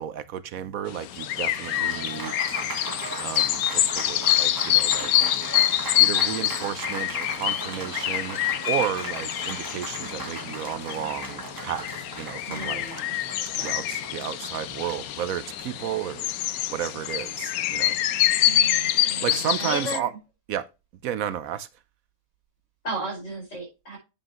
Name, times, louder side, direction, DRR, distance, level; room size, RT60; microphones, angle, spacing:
voice 1, 0.0-2.3 3.2-5.1 6.0-8.4 8.7-11.9 12.2-12.8 13.6-16.3 16.7-18.0 19.2-20.1 20.5-20.7 21.0-21.7, right 10 dB, 70° right, 1.0 m, -32 dB
sound 1, 0.9-20.0, left 13 dB, 80° left, 1.1 m, -26 dB
Applause, 1.1-15.8, right 2 dB, 15° right, 1.0 m, -38 dB
voice 2, 1.8-2.3 12.4-13.1 13.6-13.7 18.4-20.1 22.8-24.0, right 2 dB, 55° left, 5.3 m, -35 dB
8.7 x 7.6 x 2.9 m
omnidirectional pair, 1.5 m